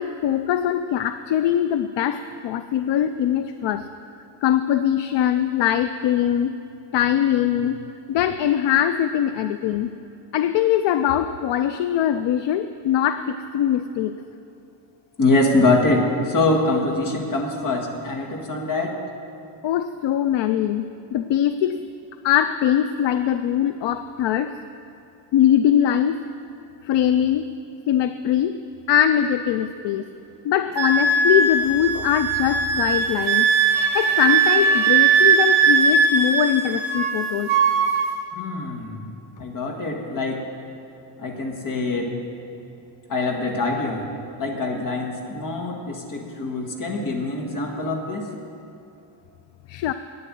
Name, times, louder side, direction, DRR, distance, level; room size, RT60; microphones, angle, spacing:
voice 1, 0.0-3.9 4.4-6.5 6.9-7.8 8.1-9.9 10.3-14.2 19.6-20.9 21.1-21.8 22.2-24.5 25.3-26.2 26.8-27.5 27.9-28.6 28.9-30.1 30.4-33.5 33.9-37.5 49.7-49.9, left 10 dB, 70° left, 11 dB, 0.5 m, -22 dB
voice 2, 15.2-19.0 38.3-39.0 39.4-40.5 41.2-42.1 43.1-44.0 44.4-48.3, left 2 dB, 45° left, 2 dB, 1.7 m, -24 dB
Wind instrument woodwind instrument, 30.8-37.2 37.5-38.1, right 5 dB, 80° right, 1.5 m, -19 dB
11.0 x 9.1 x 7.7 m, 2.6 s
wide cardioid pair, 155°, 45 cm